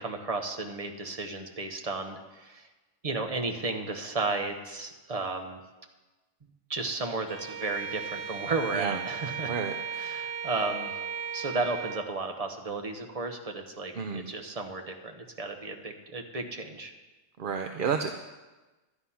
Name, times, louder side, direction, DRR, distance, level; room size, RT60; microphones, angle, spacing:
voice 1, 0.0-2.7 3.0-5.6 6.7-9.5 10.0-10.9 11.3-16.9, right 3 dB, 30° right, 4 dB, 1.1 m, -33 dB
Bowed string instrument, 7.3-12.1, right 8 dB, 70° right, 1.1 m, -36 dB
voice 2, 9.5-10.1 13.9-14.3 17.4-18.1, right 6 dB, 50° right, 5 dB, 0.7 m, -31 dB
11.5 x 9.8 x 5.7 m, 1.2 s
omnidirectional pair, 1.3 m